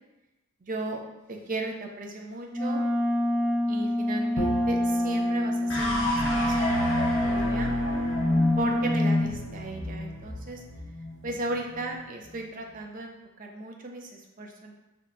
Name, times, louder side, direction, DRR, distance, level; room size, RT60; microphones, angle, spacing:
voice 1, 0.6-1.0 1.3-2.8 3.7-7.7 8.6-10.6 11.2-14.7, right 2 dB, 40° right, 2 dB, 0.5 m, -36 dB
Wind instrument woodwind instrument, 2.5-9.3, left 1 dB, 10° left, 1.4 m, -27 dB
Bowed string instrument, 4.4-7.5, right 1 dB, 55° left, 0.6 m, -38 dB
sound 1, 5.7-12.1, left 1 dB, 80° left, 0.9 m, -29 dB
5.3 x 2.9 x 2.5 m, 0.99 s
head